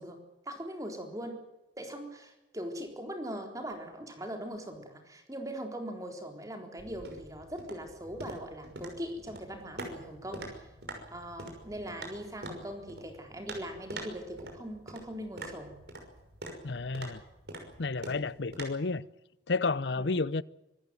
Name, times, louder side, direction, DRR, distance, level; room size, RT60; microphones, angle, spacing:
voice 1, 0.0-1.4 1.8-10.7 11.1-15.7 20.0-20.2, equal, 20° right, 3.9 m, -41 dB
sound 1, 6.8-18.6, right 1 dB, 60° right, 5.9 m, -45 dB
voice 2, 16.6-17.2 17.8-19.1 19.5-20.4, left 3 dB, 70° left, 0.7 m, -31 dB
26.0 x 14.0 x 9.3 m
head